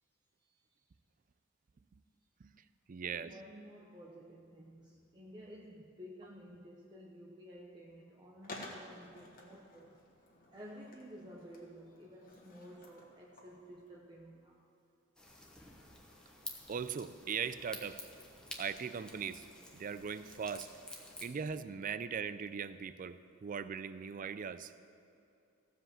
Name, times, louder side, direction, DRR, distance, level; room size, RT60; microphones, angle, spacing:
voice 1, 0.4-0.8 3.0-10.0 10.5-14.7, equal, 20° right, -2 dB, 0.7 m, -53 dB
voice 2, 2.9-3.3 16.7-18.1 18.6-19.4 19.7-20.7 21.2-24.7, right 6 dB, 40° right, 13 dB, 0.4 m, -39 dB
Skateboard, 8.4-13.9, left 2 dB, 45° left, 1.7 m, -53 dB
sound 1, 15.2-21.3, left 1 dB, 5° left, 1.1 m, -50 dB
15.5 x 5.2 x 7.5 m, 2.6 s
head